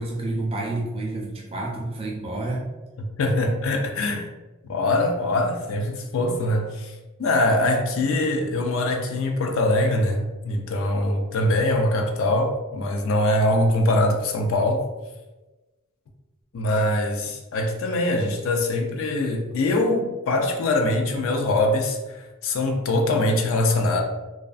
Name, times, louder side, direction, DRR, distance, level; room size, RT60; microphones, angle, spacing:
voice 1, 0.0-2.7, right 2 dB, 25° right, 0.4 m, -29 dB
voice 2, 3.2-4.3 4.7-6.9 7.2-14.8 16.5-24.0, left 1 dB, 60° left, 0.3 m, -23 dB
2.3 x 2.3 x 2.4 m
head